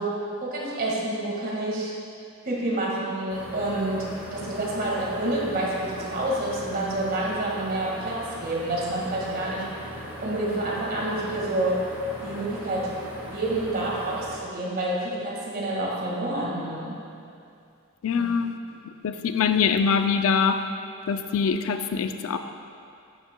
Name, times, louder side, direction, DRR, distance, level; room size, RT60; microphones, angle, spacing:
voice 1, 0.0-1.9 2.4-9.7 10.2-11.9 12.2-12.9 13.2-17.0 18.1-18.2, right 1 dB, 40° right, -4 dB, 1.8 m, -28 dB
sound 1, 3.3-14.4, equal, 10° right, 1.9 m, -39 dB
voice 2, 18.0-18.5 19.0-20.6 21.1-22.4, left 6 dB, 65° left, 8 dB, 0.4 m, -23 dB
12.0 x 8.7 x 2.2 m, 2.5 s
head